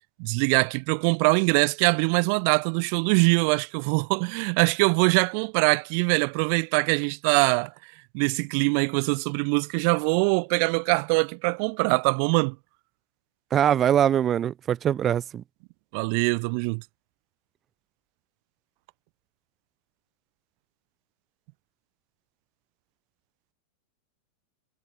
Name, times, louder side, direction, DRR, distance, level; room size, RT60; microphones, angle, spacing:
voice 1, 0.2-7.7 8.1-12.5 15.9-16.8, right 40 dB or more, 45° right, 1.0 m, -23 dB
voice 2, 13.5-15.4, right 9 dB, 25° right, 0.6 m, -22 dB
figure-of-eight pair, 90°, 0 cm